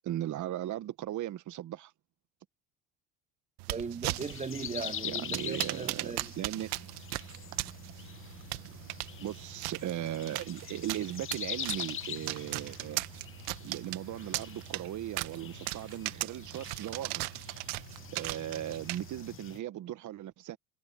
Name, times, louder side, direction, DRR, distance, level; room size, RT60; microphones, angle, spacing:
voice 1, 0.0-1.9 5.0-6.7 8.6-8.9 9.2-13.0 13.6-17.4 18.1-20.6, right 12 dB, 45° right, 1.3 m, -38 dB
sound 1, 3.6-19.4, right 23 dB, 70° right, 1.3 m, -39 dB
voice 2, 3.7-6.3, right 5 dB, 15° right, 0.8 m, -38 dB
sound 2, 4.0-19.6, left 10 dB, 30° left, 0.8 m, -44 dB
sound 3, 4.6-5.0 5.3-5.6 5.9-6.2 6.4-6.7 7.1-7.9 8.2-9.0, right 18 dB, 90° right, 7.0 m, -67 dB
supercardioid pair, 90°, 40 cm